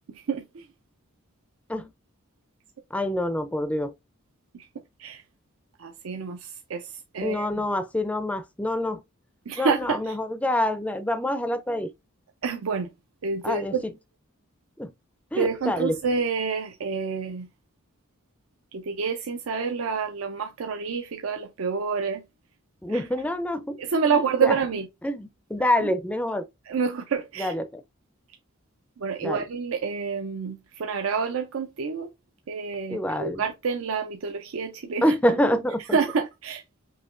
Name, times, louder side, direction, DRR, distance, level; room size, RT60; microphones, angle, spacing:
voice 1, 0.1-0.7 4.5-4.7 5.0-5.2 5.8-7.6 9.5-10.2 12.4-12.9 13.2-13.8 15.3-17.5 18.7-22.2 22.9-23.1 23.8-24.9 26.7-27.5 29.0-32.1 32.5-35.1 35.9-36.6, right 5 dB, 75° right, 0.5 m, -28 dB
voice 2, 2.9-3.9 7.2-9.0 9.6-11.9 13.4-13.9 14.8-14.9 15.3-16.0 22.8-23.8 24.1-24.6 25.0-26.5 27.4-27.8 29.2-29.4 32.9-33.4 35.0-36.0, left 1 dB, 5° left, 0.4 m, -26 dB
5.5 x 2.9 x 2.4 m
head